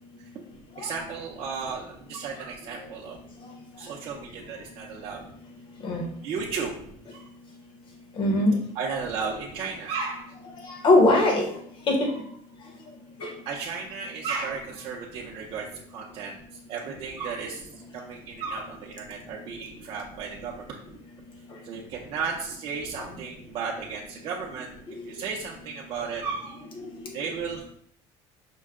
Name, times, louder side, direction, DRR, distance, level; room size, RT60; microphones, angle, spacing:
voice 1, 0.8-3.2 3.8-5.2 6.2-6.8 7.1-7.2 8.8-10.3 12.0-12.1 13.5-16.4 16.7-17.7 17.9-20.8 21.6-24.7 25.1-26.6 27.1-27.6, right 5 dB, 45° right, -2 dB, 0.6 m, -34 dB
voice 2, 8.2-8.5 10.8-11.4 11.9-12.1 13.2-13.3, left 2 dB, 40° left, 2 dB, 1.1 m, -20 dB
5.2 x 2.2 x 3.6 m, 0.65 s
cardioid pair, 145°, 12 cm